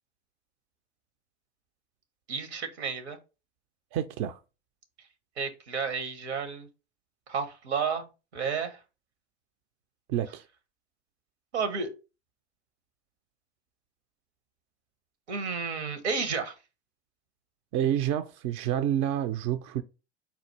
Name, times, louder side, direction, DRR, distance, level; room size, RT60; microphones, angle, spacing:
voice 1, 2.3-3.2 5.4-6.7 7.3-8.8 11.5-11.9 15.3-16.5, right 5 dB, 75° right, 1.0 m, -31 dB
voice 2, 3.9-4.4 10.1-10.4 17.7-19.8, right 11 dB, 40° right, 0.4 m, -28 dB
4.2 x 2.3 x 4.5 m
figure-of-eight pair, 75°, 33 cm